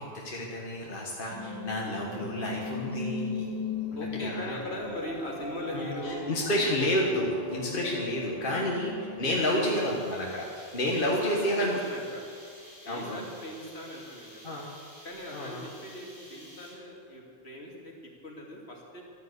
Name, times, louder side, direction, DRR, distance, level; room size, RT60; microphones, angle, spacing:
voice 1, 0.0-3.5 4.2-4.6 5.7-8.9 9.2-11.8 12.9-13.2 14.4-14.7 15.3-15.6, left 1 dB, 55° left, -2 dB, 1.8 m, -30 dB
sound 1, 1.3-9.3, left 3 dB, 20° left, 2.1 m, -38 dB
voice 2, 3.9-6.3 8.5-8.8 9.3-10.1 10.9-12.2 12.8-14.6 15.0-17.9 18.2-19.0, left 1 dB, 75° left, -2 dB, 2.9 m, -39 dB
sound 2, 9.2-17.0, equal, 20° right, 5.1 m, -51 dB
12.5 x 11.5 x 8.3 m, 2.3 s
omnidirectional pair, 1.1 m